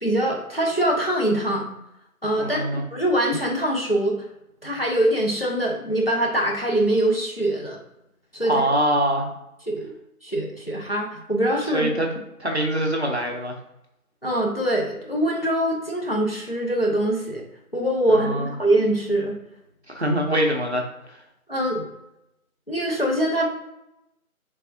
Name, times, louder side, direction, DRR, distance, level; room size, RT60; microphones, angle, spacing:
voice 1, 0.0-1.8 2.2-4.2 4.6-7.8 8.3-8.7 9.7-9.9 10.2-11.9 14.2-17.4 17.7-19.4 21.5-21.9 22.7-23.5, right 1 dB, 40° left, -1 dB, 0.6 m, -23 dB
voice 2, 2.4-2.8 8.4-9.3 11.7-12.1 12.4-13.5 18.1-18.5 19.9-20.9, right 1 dB, 50° right, 1 dB, 0.5 m, -23 dB
3.4 x 3.3 x 2.6 m, 0.87 s
figure-of-eight pair, 165°, 44 cm